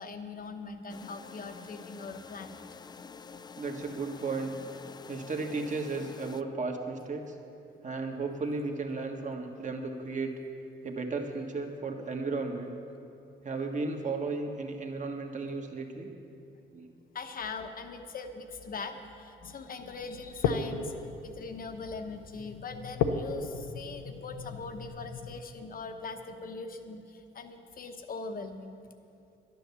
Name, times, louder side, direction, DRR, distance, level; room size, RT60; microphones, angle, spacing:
voice 1, 0.0-2.6 17.1-28.8, left 4 dB, 45° left, 6 dB, 1.1 m, -41 dB
sound 1, 0.9-6.4, left 5 dB, 20° left, 0.3 m, -48 dB
voice 2, 3.6-4.5 5.1-7.3 7.8-10.3 10.8-12.8 13.4-16.1 16.7-16.9, right 3 dB, 40° right, 3 dB, 1.5 m, -34 dB
sound 2, 19.9-25.4, left 5 dB, 90° left, 0.8 m, -35 dB
11.0 x 10.5 x 7.0 m, 2.7 s
cardioid pair, 90°, 20 cm